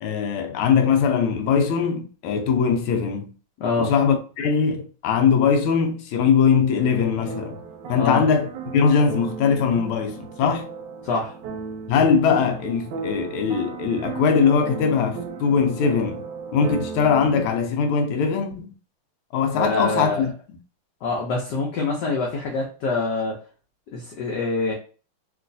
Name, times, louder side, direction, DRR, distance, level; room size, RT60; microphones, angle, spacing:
voice 1, 0.0-3.3 3.8-7.6 7.9-8.5 8.7-10.7 11.9-18.7 19.3-20.6, left 6 dB, 85° left, 1.5 m, -21 dB
voice 2, 3.6-3.9 7.9-8.2 11.0-11.4 19.5-20.2 21.0-23.4 23.9-24.7, left 3 dB, 65° left, 1.1 m, -25 dB
sound 1, 6.8-17.5, right 5 dB, 70° right, 1.1 m, -35 dB
3.0 x 3.0 x 2.6 m
omnidirectional pair, 2.3 m